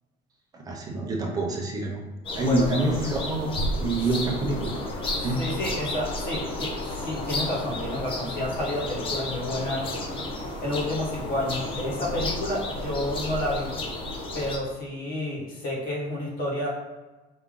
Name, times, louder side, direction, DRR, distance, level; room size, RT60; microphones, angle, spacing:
voice 1, 0.7-2.0 2.3-3.5 3.8-4.7 5.2-5.4, right 2 dB, 20° right, 0 dB, 0.7 m, -26 dB
sound 1, 2.2-14.6, left 1 dB, 30° left, 0.7 m, -32 dB
voice 2, 2.4-2.7 4.0-4.2 5.1-9.9 10.6-13.7 14.3-16.7, left 1 dB, 50° left, -3 dB, 1.4 m, -30 dB
4.9 x 2.8 x 3.7 m, 1.1 s
cardioid pair, 170°, 19 cm